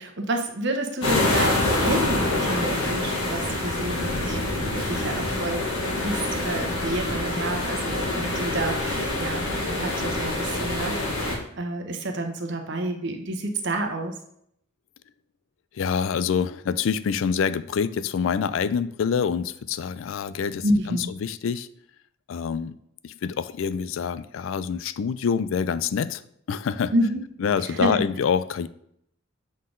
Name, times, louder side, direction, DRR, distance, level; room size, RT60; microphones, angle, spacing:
voice 1, 0.0-5.7 6.0-14.2 20.6-21.1 26.9-27.2 27.6-28.0, right 1 dB, 55° right, 5 dB, 0.9 m, -29 dB
sound 1, 1.0-11.4, left 2 dB, 90° left, 1.5 m, -26 dB
voice 2, 15.7-21.7 22.3-22.7 23.0-26.2 26.5-26.9 27.4-28.7, left 6 dB, 70° left, 15 dB, 0.3 m, -26 dB
7.4 x 3.9 x 3.7 m, 0.71 s
head